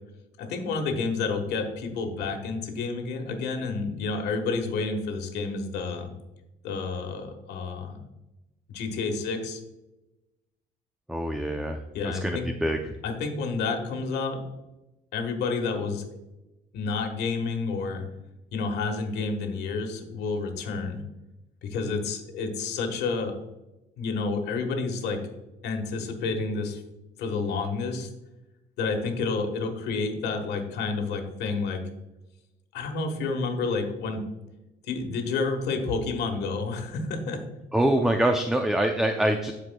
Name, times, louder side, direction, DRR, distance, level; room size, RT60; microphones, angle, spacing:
voice 1, 0.4-6.1 6.6-8.0 8.7-9.6 11.9-12.5 13.0-14.4 15.1-16.1 16.7-18.0 18.5-21.0 21.6-23.3 24.0-25.2 25.6-26.8 27.2-28.1 28.8-31.8 32.7-34.2 34.9-37.4, left 4 dB, 80° left, 5 dB, 1.4 m, -29 dB
voice 2, 11.1-11.8 12.0-12.9 37.7-39.5, right 1 dB, ahead, 5 dB, 0.5 m, -25 dB
13.0 x 4.8 x 2.3 m, 0.98 s
cardioid pair, 110°, 17 cm